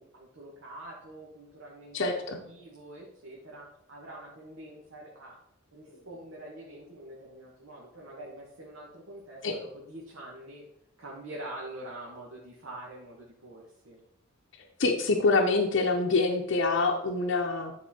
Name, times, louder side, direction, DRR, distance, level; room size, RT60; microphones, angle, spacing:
voice 1, 0.0-5.4 5.7-10.6 11.0-14.0, right 1 dB, 65° right, -3 dB, 1.5 m, -45 dB
voice 2, 1.9-2.4 9.4-9.5 14.8-17.7, left 3 dB, 60° left, 2 dB, 0.8 m, -25 dB
10.0 x 4.2 x 4.3 m, 0.78 s
head